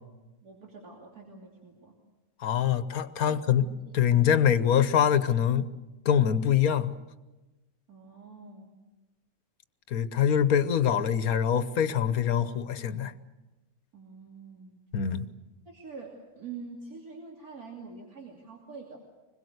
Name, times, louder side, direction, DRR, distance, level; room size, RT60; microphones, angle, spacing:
voice 1, 0.4-1.9 3.2-3.4 7.9-8.7 13.9-14.8 15.7-19.0, right 4 dB, 85° right, 3.5 m, -45 dB
voice 2, 2.4-3.6 3.9-5.7 6.0-6.9 9.9-13.1 14.9-15.3, left 9 dB, 75° left, 1.5 m, -24 dB
25.5 x 21.5 x 8.0 m
omnidirectional pair, 1.5 m